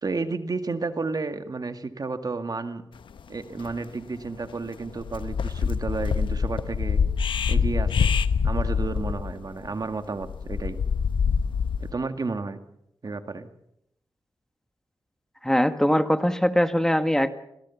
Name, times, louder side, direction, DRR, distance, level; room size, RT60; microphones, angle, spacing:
voice 1, 0.0-2.8 3.3-7.0 7.5-8.1 8.4-10.8 11.8-12.6 13.0-13.5, right 3 dB, 50° right, 8 dB, 2.0 m, -31 dB
sound 1, 3.2-3.3 3.5-3.8 4.2-4.5 4.9-11.9, left 6 dB, 85° left, 1.0 m, -25 dB
voice 2, 15.4-17.3, equal, 5° left, 9 dB, 1.7 m, -21 dB
26.0 x 17.0 x 7.2 m, 0.77 s
cardioid pair, 55°, 8 cm